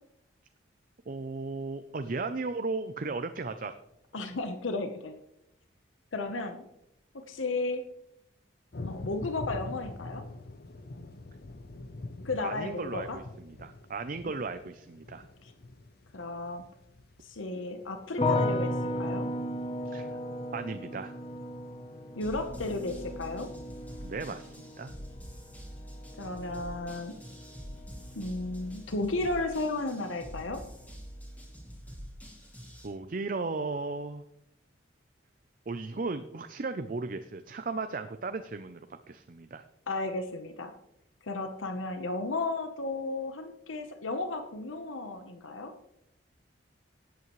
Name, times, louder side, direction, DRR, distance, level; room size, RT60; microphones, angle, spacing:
voice 1, 1.1-3.8 12.4-15.3 19.9-20.1 20.5-21.1 24.0-24.9 32.8-34.2 35.7-38.8 39.1-39.6, right 3 dB, 45° right, 9 dB, 0.5 m, -36 dB
voice 2, 4.1-5.2 6.1-6.6 7.1-7.9 8.9-10.3 12.2-13.2 14.2-14.3 15.4-15.5 16.1-16.6 17.2-19.3 22.2-23.5 26.2-27.2 28.1-30.6 39.9-40.7 41.2-45.7, left 2 dB, 80° left, 7 dB, 1.0 m, -34 dB
sound 1, 8.7-20.5 23.1-23.2 23.5-23.6, left 2 dB, 50° left, 0.6 m, -45 dB
sound 2, 18.2-29.2 29.5-30.3, left 1 dB, 25° left, 0.9 m, -36 dB
sound 3, 22.2-32.9, equal, 10° left, 2.4 m, -46 dB
17.5 x 8.3 x 3.1 m, 0.81 s
head